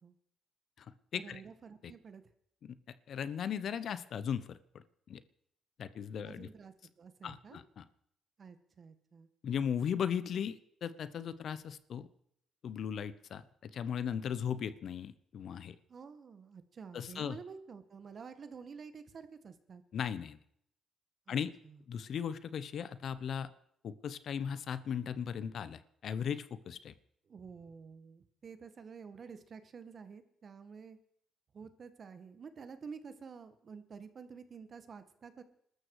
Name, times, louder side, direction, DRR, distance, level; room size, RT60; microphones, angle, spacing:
voice 1, 1.1-2.3 6.2-7.6 8.4-9.3 15.9-19.8 21.3-21.4 21.6-21.8 27.3-31.0 31.5-35.4, right 5 dB, 45° right, 11 dB, 1.7 m, -50 dB
voice 2, 3.1-4.6 5.1-5.2 5.8-6.5 7.2-7.8 9.4-12.1 12.6-15.8 16.9-17.4 19.9-20.4 21.3-21.5 21.9-23.5 23.8-26.9, left 8 dB, 65° left, 15 dB, 1.0 m, -37 dB
21.5 x 13.0 x 4.9 m, 0.68 s
cardioid pair, 90°, 0 cm